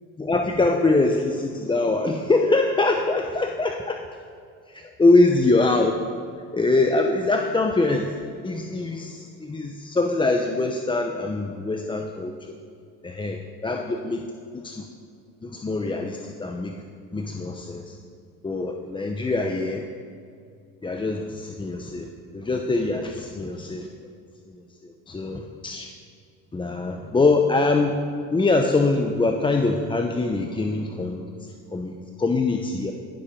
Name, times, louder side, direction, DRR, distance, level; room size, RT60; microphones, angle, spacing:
voice 1, 0.2-4.0 4.7-6.0 6.5-8.1 8.4-12.6 13.0-14.3 14.5-14.9 15.4-16.8 17.1-18.0 18.4-19.9 20.8-23.9 24.5-25.9 26.5-28.0 28.3-31.3 31.7-32.9, left 3 dB, 15° left, 4 dB, 0.8 m, -23 dB
16.5 x 7.3 x 5.2 m, 2.4 s
supercardioid pair, 90°, 34 cm